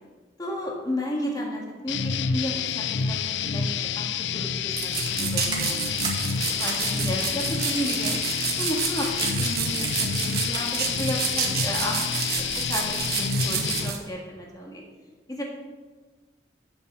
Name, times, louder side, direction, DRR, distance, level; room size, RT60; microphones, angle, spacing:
voice 1, 0.4-3.7 4.0-5.8 6.3-8.2 8.6-12.0 12.3-14.8 15.3-15.4, left 1 dB, 20° left, -1 dB, 1.7 m, -33 dB
sound 1, 1.9-13.9, left 6 dB, 80° left, 0.5 m, -28 dB
sound 2, 4.7-14.0, right 7 dB, 55° right, 1.3 m, -30 dB
sound 3, 4.9-14.1, right 2 dB, 25° right, 1.8 m, -40 dB
11.0 x 5.5 x 6.7 m, 1.3 s
head